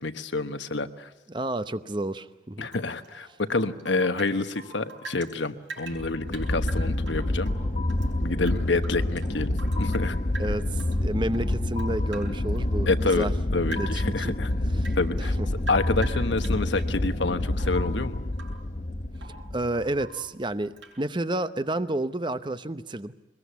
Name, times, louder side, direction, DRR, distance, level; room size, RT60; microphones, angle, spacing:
voice 1, 0.0-1.1 2.6-7.5 8.2-10.2 12.9-13.3 13.5-14.5 15.0-15.3 15.7-18.2, left 3 dB, 75° left, 10 dB, 1.2 m, -28 dB
voice 2, 1.3-2.7 10.4-13.3 13.7-14.3 14.7-15.3 19.5-23.1, right 1 dB, 25° right, 12 dB, 0.8 m, -30 dB
Rain / Drip, 2.7-5.3 5.6-8.1 8.4-10.1 10.3-11.0 11.3-13.3 13.7-14.1 14.4-17.0 17.5-17.9 18.3-18.6 18.9-19.5 19.9-20.3 20.8-21.0, right 4 dB, 85° right, 6.7 m, -44 dB
sound 1, 5.9-20.1, left 1 dB, 40° left, 0.9 m, -28 dB
23.0 x 21.5 x 8.3 m, 1.0 s
head